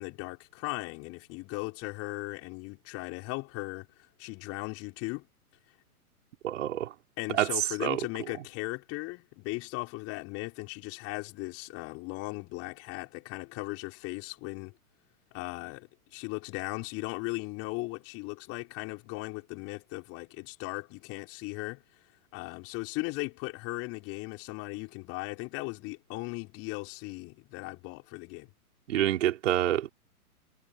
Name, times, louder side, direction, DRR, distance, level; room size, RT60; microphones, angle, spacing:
voice 1, 0.0-3.9 4.2-5.3 7.2-14.7 15.3-21.8 22.3-28.5, left 24 dB, 30° left, 4.9 m, -37 dB
voice 2, 6.4-6.9 7.3-8.0 28.9-29.9, right 12 dB, 55° right, 4.7 m, -27 dB
figure-of-eight pair, 120°, 45 cm